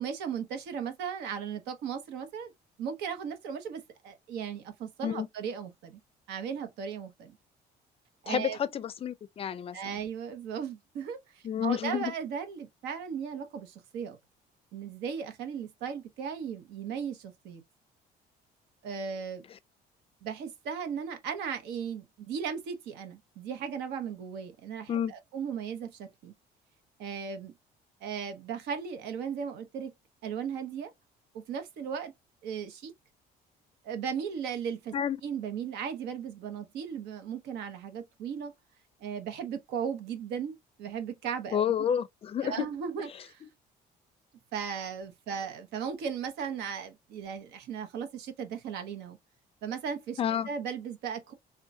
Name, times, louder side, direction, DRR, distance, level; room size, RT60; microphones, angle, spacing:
voice 1, 0.0-2.5 2.8-6.0 6.3-7.4 8.2-8.6 9.7-14.2 14.7-17.6 18.8-19.4 20.2-26.3 27.0-27.5 28.0-29.9 30.2-30.9 31.3-32.1 32.4-32.9 33.8-34.9 35.2-38.5 39.0-41.6 42.4-43.4 44.5-49.2 49.6-50.2 50.4-51.3, right 7 dB, 85° right, 0.9 m, -36 dB
voice 2, 8.3-9.8 11.4-12.1 24.9-25.1 34.9-35.2 41.5-42.7 43.4-43.5 50.2-50.5, left 8 dB, 35° left, 0.4 m, -30 dB
3.6 x 2.2 x 2.6 m
cardioid pair, 110°, 17 cm